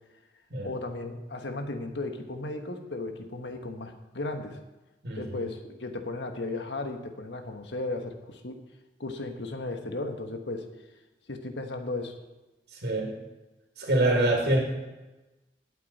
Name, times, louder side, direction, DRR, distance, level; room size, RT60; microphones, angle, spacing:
voice 1, 0.6-4.6 5.1-8.6 9.0-10.7 11.3-12.2, left 2 dB, 90° left, 5 dB, 1.4 m, -35 dB
voice 2, 5.0-5.5 12.7-13.1 13.8-14.6, right 1 dB, 70° right, -1 dB, 2.6 m, -25 dB
18.0 x 8.6 x 4.3 m, 1.1 s
head